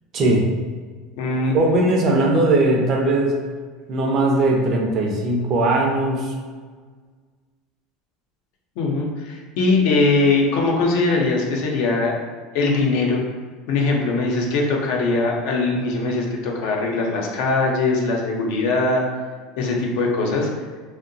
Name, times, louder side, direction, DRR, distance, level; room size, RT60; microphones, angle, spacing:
voice 1, 0.1-0.5 1.5-3.4 3.9-6.3, right 2 dB, 40° right, 0 dB, 0.5 m, -19 dB
voice 2, 1.2-1.6 8.8-12.1 12.5-13.2 13.7-19.0 19.6-20.5, left 3 dB, 70° left, -1 dB, 0.5 m, -21 dB
2.7 x 2.0 x 2.6 m, 1.5 s
supercardioid pair, 130°, 0 cm